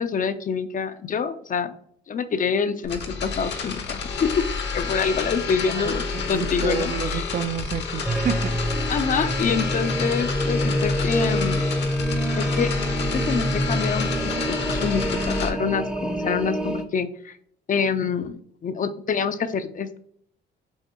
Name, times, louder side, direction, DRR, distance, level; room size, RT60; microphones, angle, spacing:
voice 1, 0.0-1.7 2.1-4.3 4.7-7.2 8.9-11.7 12.4-12.7 13.0-17.4 17.7-20.0, left 6 dB, 45° left, 0.5 m, -26 dB
sound 1, 2.8-15.5, left 5 dB, 60° left, 1.0 m, -29 dB
voice 2, 5.7-8.5, right 8 dB, 40° right, 0.5 m, -29 dB
sound 2, 8.1-16.9, right 1 dB, 5° right, 0.7 m, -26 dB
5.6 x 2.9 x 2.9 m
cardioid pair, 90°, 20 cm